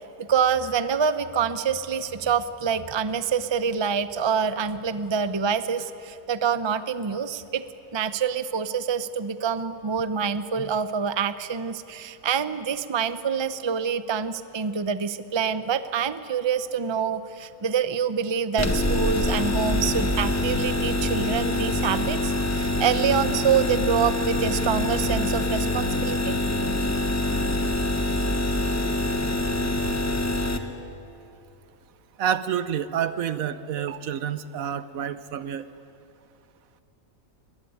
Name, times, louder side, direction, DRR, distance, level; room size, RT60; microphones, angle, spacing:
voice 1, 0.2-7.6 7.9-26.4, right 7 dB, 30° right, 12 dB, 0.6 m, -26 dB
sound 1, 18.6-30.6, left 1 dB, 10° left, 1.2 m, -25 dB
voice 2, 32.2-35.6, right 9 dB, 80° right, 13 dB, 1.3 m, -28 dB
22.0 x 21.0 x 9.6 m, 2.7 s
omnidirectional pair, 1.4 m